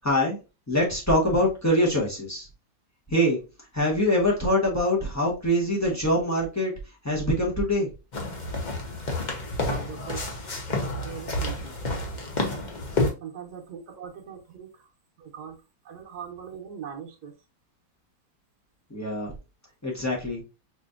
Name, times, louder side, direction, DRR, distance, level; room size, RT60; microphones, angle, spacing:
voice 1, 0.0-0.4 0.7-2.5 3.1-3.4 3.7-6.7 7.0-7.9 18.9-19.3 19.8-20.4, equal, 15° left, -4 dB, 0.6 m, -24 dB
sound 1, 8.1-13.1, left 2 dB, 75° left, 0.4 m, -29 dB
voice 2, 9.6-10.2 10.8-11.8 13.2-14.9 15.2-15.6 15.8-17.3, right 7 dB, 60° right, 1 dB, 1.2 m, -40 dB
5.0 x 2.7 x 2.4 m, 0.29 s
omnidirectional pair, 2.1 m